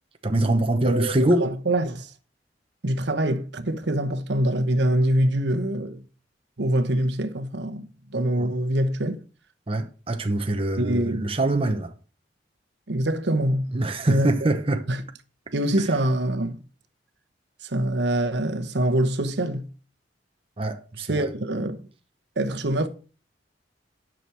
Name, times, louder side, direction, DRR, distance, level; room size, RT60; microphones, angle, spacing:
voice 1, 0.2-1.5 8.4-8.5 9.7-11.9 13.7-14.9 20.6-21.3, right 1 dB, 30° right, 0.9 m, -24 dB
voice 2, 1.4-2.1 2.8-6.0 6.6-9.2 10.8-11.3 12.9-13.7 14.1-14.3 14.9-15.0 15.5-16.6 17.6-19.7 21.0-21.8 22.4-22.9, right 1 dB, 65° right, 1.1 m, -24 dB
10.0 x 6.3 x 6.0 m
head